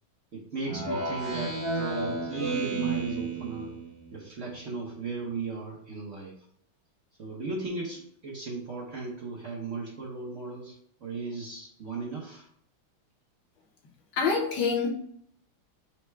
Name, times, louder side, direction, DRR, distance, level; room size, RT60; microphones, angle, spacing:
voice 1, 0.3-3.7 4.1-6.3 7.2-12.4, right 4 dB, 55° right, -4 dB, 0.9 m, -36 dB
Speech synthesizer, 0.6-4.2, right 2 dB, 25° right, 0.8 m, -32 dB
voice 2, 14.2-14.9, left 5 dB, 60° left, 0 dB, 1.4 m, -26 dB
4.7 x 2.1 x 4.5 m, 0.67 s
omnidirectional pair, 2.3 m